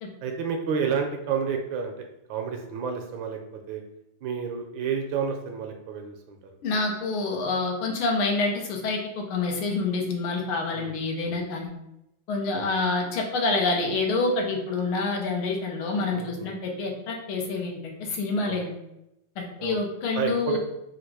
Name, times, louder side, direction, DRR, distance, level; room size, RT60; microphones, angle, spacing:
voice 1, 0.2-3.4 3.7-3.8 4.2-6.5 10.7-11.0 11.2-11.4 12.5-12.6 16.1-16.6 18.5-18.6 19.6-19.8 20.1-20.6, right 6 dB, 75° right, 4 dB, 1.2 m, -30 dB
voice 2, 6.6-11.7 12.3-18.7 19.4-20.6, left 3 dB, 80° left, 1 dB, 1.7 m, -27 dB
4.2 x 2.5 x 4.6 m, 0.85 s
omnidirectional pair, 2.3 m